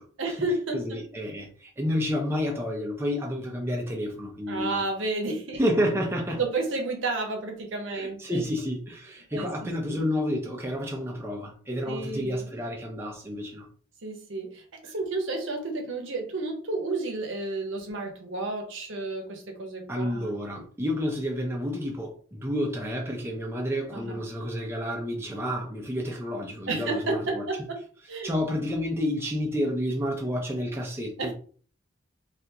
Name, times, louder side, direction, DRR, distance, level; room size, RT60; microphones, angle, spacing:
voice 1, 0.2-1.0 4.5-5.6 6.4-8.4 9.3-10.0 11.8-12.5 14.0-20.4 23.9-24.2 26.7-27.8 28.1-28.3 31.2-31.3, right 2 dB, 75° right, 0.8 m, -31 dB
voice 2, 0.7-4.8 5.6-6.4 7.9-13.7 19.9-27.4 28.2-31.3, equal, 10° right, 0.5 m, -30 dB
3.4 x 2.5 x 2.8 m
head